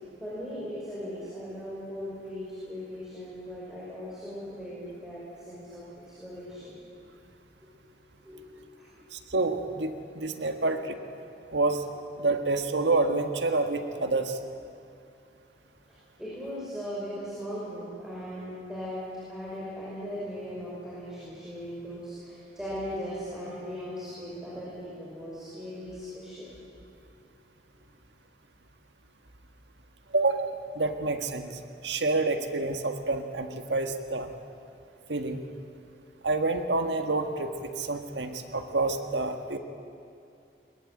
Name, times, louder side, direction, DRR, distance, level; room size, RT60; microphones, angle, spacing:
voice 1, 0.2-5.8 6.2-6.7 8.2-8.5 8.8-9.2 10.4-10.7 16.2-19.0 19.3-26.5, equal, 5° right, -8 dB, 5.6 m, -38 dB
voice 2, 9.1-11.0 11.5-11.8 12.2-14.4 30.1-31.5 31.8-34.3 35.1-35.4 36.2-39.6, right 3 dB, 85° right, 6 dB, 1.7 m, -28 dB
21.5 x 21.5 x 9.0 m, 2.6 s
head